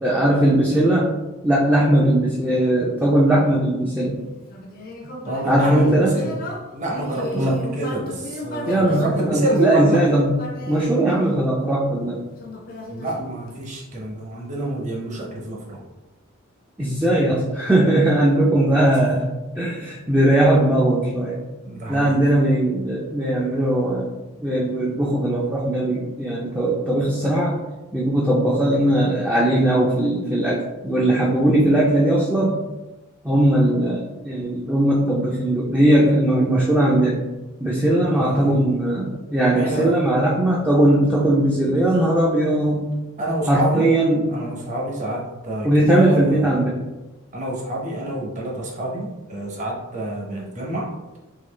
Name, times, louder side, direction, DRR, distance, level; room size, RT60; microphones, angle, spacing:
voice 1, 0.0-1.1 1.4-4.2 5.4-6.1 7.3-7.6 8.7-10.4 10.7-12.2 16.8-19.3 19.6-21.4 21.9-24.1 24.4-27.5 27.9-32.6 33.2-37.2 37.6-42.9 43.5-44.3 45.6-46.8, right 1 dB, 10° right, -5 dB, 0.4 m, -19 dB
Human voice, 4.4-11.8 12.4-13.8, left 1 dB, 45° left, 0.6 m, -35 dB
voice 2, 5.2-6.3 6.7-10.1 12.9-15.8 18.7-18.9 21.6-22.2 38.1-38.7 39.5-40.0 40.6-40.7 43.2-43.9 44.3-46.6 47.3-50.9, right 1 dB, 35° right, -2 dB, 0.8 m, -27 dB
3.7 x 2.8 x 3.2 m, 1.1 s
head